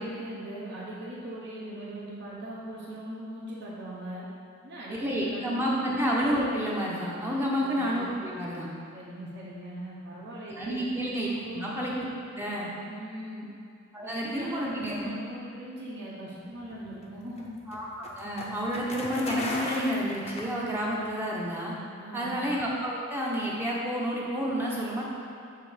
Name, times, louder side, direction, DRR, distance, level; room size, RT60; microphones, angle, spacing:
voice 1, 0.0-4.3 4.6-5.8 7.6-8.0 8.9-10.8 11.4-11.7 12.8-13.5 14.0-17.5 22.0-22.4, right 1 dB, 50° right, -7 dB, 1.0 m, -40 dB
voice 2, 4.9-8.7 10.5-11.3 11.5-12.1 12.3-12.7 13.9-15.1 17.7-21.7 22.1-25.0, equal, 10° right, -5 dB, 0.8 m, -30 dB
sound 1, 16.6-21.1, left 1 dB, 30° left, 0.6 m, -37 dB
7.4 x 3.5 x 5.0 m, 2.5 s
head